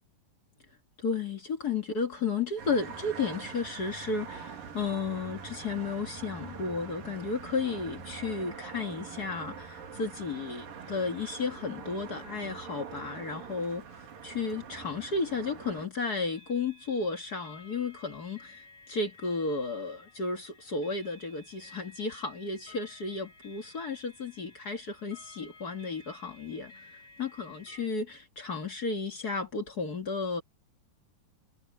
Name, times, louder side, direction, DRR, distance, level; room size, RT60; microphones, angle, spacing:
voice 1, 1.0-26.9 27.2-30.4, left 4 dB, 35° left, 1.7 m, -33 dB
sound 1, 2.6-15.9, right 6 dB, 80° right, 4.8 m, -44 dB
sound 2, 14.5-14.6 16.2-27.9, left 3 dB, 55° left, 8.7 m, -55 dB
omnidirectional pair, 3.9 m